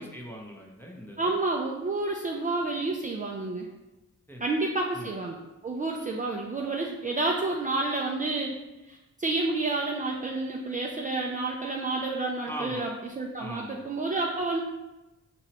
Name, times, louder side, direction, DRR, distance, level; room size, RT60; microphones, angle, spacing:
voice 1, 0.0-1.3 4.3-4.5 4.9-5.1 12.5-12.9 13.4-13.8, equal, 5° left, -1 dB, 0.7 m, -40 dB
voice 2, 1.2-3.7 4.4-5.4 5.6-8.5 8.9-12.9 13.2-14.6, right 2 dB, 30° right, -1 dB, 0.4 m, -29 dB
4.7 x 3.0 x 2.9 m, 1.0 s
wide cardioid pair, 105°, 29 cm